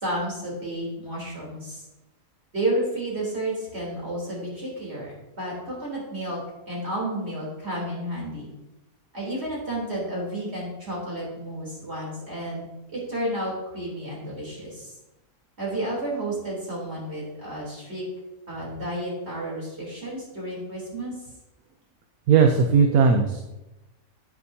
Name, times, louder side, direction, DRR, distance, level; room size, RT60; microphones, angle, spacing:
voice 1, 0.0-1.8 2.5-6.4 6.7-8.5 9.1-12.7 12.9-14.9 15.6-18.0 18.5-21.1, right 1 dB, 45° right, -5 dB, 3.8 m, -31 dB
voice 2, 22.3-23.4, right 5 dB, 75° right, 4 dB, 1.2 m, -18 dB
9.8 x 9.4 x 2.8 m, 0.98 s
omnidirectional pair, 1.6 m